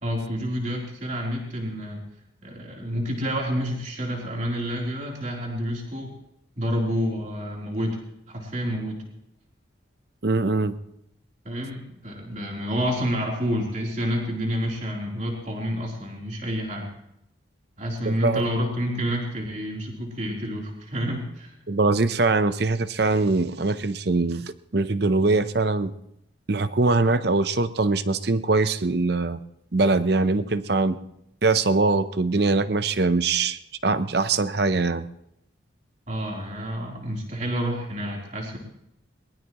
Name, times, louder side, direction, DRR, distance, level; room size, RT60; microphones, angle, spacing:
voice 1, 0.0-2.0 2.4-6.2 6.6-8.0 8.3-9.0 11.5-16.9 17.8-21.6 36.1-38.6, equal, 40° right, -1 dB, 3.5 m, -29 dB
voice 2, 10.2-10.8 18.1-18.4 21.7-25.9 26.5-29.4 29.7-31.0 31.4-35.1, right 3 dB, 55° right, 13 dB, 0.7 m, -22 dB
22.0 x 20.5 x 3.1 m, 0.79 s
head